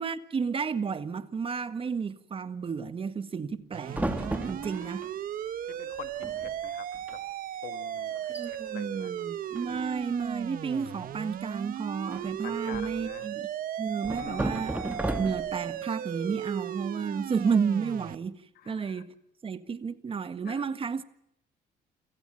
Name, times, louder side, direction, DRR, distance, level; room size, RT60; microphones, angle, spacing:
voice 1, 0.0-5.0 8.3-13.5 13.8-18.4 18.6-19.1 19.4-21.0, right 5 dB, 35° right, 1.7 m, -32 dB
sound 1, 3.7-18.2, right 10 dB, 55° right, 1.2 m, -36 dB
sound 2, 3.9-5.1 5.9-6.0 6.2-6.6 6.9-7.1 7.6-7.7 8.2-8.5 9.6-10.1 12.1-13.1 14.0-15.7, right 1 dB, 10° right, 2.0 m, -34 dB
voice 2, 5.8-7.2 7.6-9.1 12.4-13.3 14.2-14.6 18.5-19.0 20.4-20.6, left 11 dB, 65° left, 1.6 m, -46 dB
29.0 x 16.5 x 8.9 m
cardioid pair, 110°, 17 cm